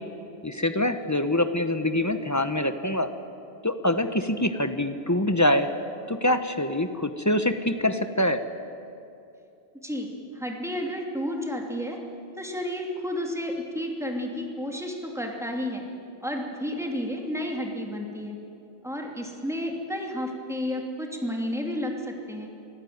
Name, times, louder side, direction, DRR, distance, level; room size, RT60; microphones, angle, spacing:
voice 1, 0.4-3.1 3.6-5.7 6.1-8.4, left 1 dB, 15° left, 9 dB, 1.0 m, -25 dB
voice 2, 9.8-12.0 12.4-15.8 16.2-18.4 18.8-22.5, equal, 5° right, 1 dB, 2.8 m, -31 dB
25.0 x 15.5 x 9.5 m, 2.7 s
omnidirectional pair, 1.1 m